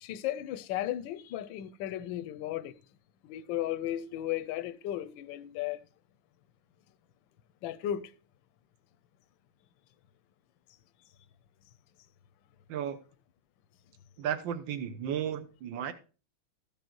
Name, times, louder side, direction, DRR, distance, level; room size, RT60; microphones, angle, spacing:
voice 1, 0.0-2.8 3.2-5.8 7.6-8.1, left 12 dB, 75° left, 1.3 m, -35 dB
voice 2, 14.2-15.9, right 9 dB, 65° right, 1.6 m, -34 dB
14.0 x 5.3 x 4.5 m
omnidirectional pair, 2.3 m